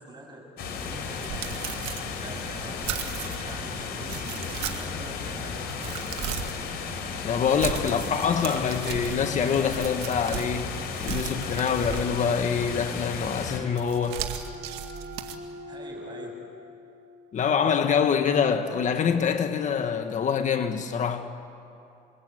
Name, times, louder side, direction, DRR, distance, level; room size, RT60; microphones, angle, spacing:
voice 1, 0.0-1.6 2.0-2.7 3.4-6.1 7.9-8.0 15.7-16.3, right 2 dB, 25° right, 7.6 m, -44 dB
sound 1, 0.6-13.6, left 5 dB, 70° left, 4.7 m, -34 dB
sound 2, 0.8-3.6 4.0-5.0 5.5-6.6 7.4-10.6 10.9-12.4 13.7-15.4, right 11 dB, 90° right, 2.2 m, -36 dB
voice 2, 7.2-14.3 17.3-21.3, left 7 dB, 45° left, 1.6 m, -25 dB
sound 3, 13.2-18.7, left 1 dB, 70° right, 5.8 m, -45 dB
28.5 x 21.5 x 9.2 m
cardioid pair, 110°, 17 cm